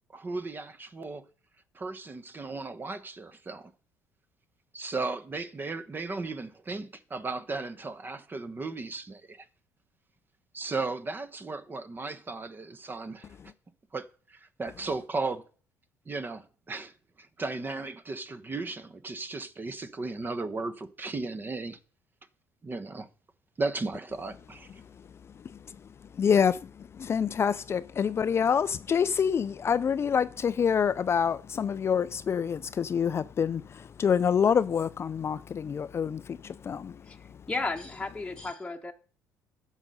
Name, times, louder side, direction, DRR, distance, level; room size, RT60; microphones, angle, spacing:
voice 1, 0.1-1.2 1.7-3.7 4.7-9.5 10.5-13.4 13.9-15.4 16.0-21.8 22.6-23.1 23.6-24.7, right 3 dB, 30° right, 1.1 m, -35 dB
voice 2, 25.4-37.4, left 7 dB, 40° left, 0.4 m, -27 dB
voice 3, 37.5-38.9, left 3 dB, 15° left, 1.1 m, -33 dB
9.7 x 6.5 x 5.4 m
hypercardioid pair, 65°, 7 cm